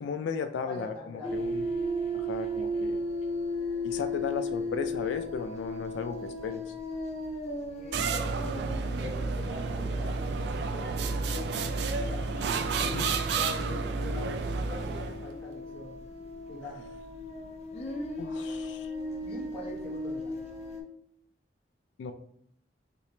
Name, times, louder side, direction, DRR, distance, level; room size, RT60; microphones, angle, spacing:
voice 1, 0.0-1.6 2.1-3.0 3.8-6.6 12.8-13.0 18.2-18.9 22.0-22.1, left 5 dB, 85° left, 9 dB, 0.3 m, -35 dB
voice 2, 0.6-1.5 7.7-12.3 12.8-14.3 14.7-15.9 16.5-16.9 19.2-20.3, left 3 dB, 10° left, -8 dB, 1.2 m, -44 dB
sound 1, 1.2-20.8, left 1 dB, 35° left, 0.5 m, -36 dB
sound 2, 7.9-15.3, right 4 dB, 70° right, 0.3 m, -31 dB
3.4 x 2.9 x 2.7 m, 0.68 s
head